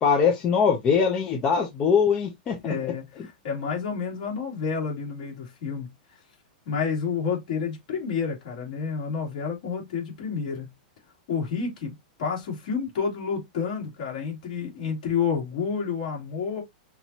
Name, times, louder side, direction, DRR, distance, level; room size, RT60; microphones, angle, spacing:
voice 1, 0.0-2.6, left 6 dB, 20° left, 0.6 m, -22 dB
voice 2, 2.6-6.2 6.6-10.7 11.3-16.6, left 6 dB, 50° left, 3.1 m, -30 dB
5.9 x 3.0 x 2.8 m
supercardioid pair, 175°, 5 cm